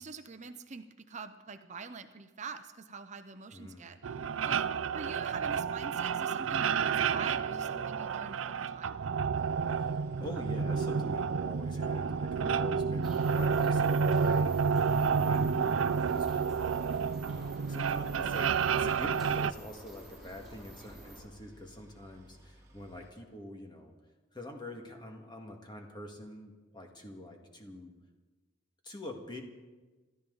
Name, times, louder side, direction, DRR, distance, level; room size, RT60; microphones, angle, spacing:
voice 1, 0.0-4.6 4.9-9.0 15.3-15.4, right 4 dB, 35° right, 9 dB, 0.7 m, -45 dB
voice 2, 3.5-3.9 9.7-23.9 24.3-28.0 28.8-29.4, left 1 dB, 20° left, 2 dB, 1.9 m, -46 dB
sound 1, 4.0-19.5, right 6 dB, 80° right, 0.5 m, -30 dB
Boat Water vehicle, 9.3-23.1, equal, 15° right, 3.0 m, -59 dB
sound 2, 13.0-21.2, right 1 dB, ahead, 6.2 m, -50 dB
27.0 x 13.0 x 4.0 m, 1.3 s
head